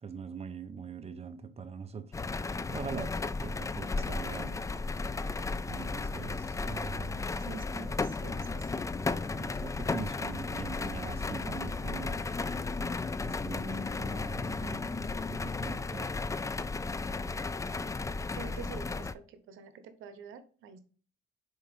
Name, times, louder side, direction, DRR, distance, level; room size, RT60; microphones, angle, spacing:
voice 1, 0.0-2.1 2.7-4.6 5.7-7.2 9.3-12.2 13.2-15.0 15.3-16.2, right 5 dB, 30° right, 0.8 m, -42 dB
sound 1, 2.1-19.1, left 3 dB, 15° left, 0.3 m, -34 dB
voice 2, 7.4-8.9 18.3-20.8, right 6 dB, 85° right, 0.9 m, -47 dB
6.4 x 4.4 x 3.5 m
cardioid pair, 90°, 20 cm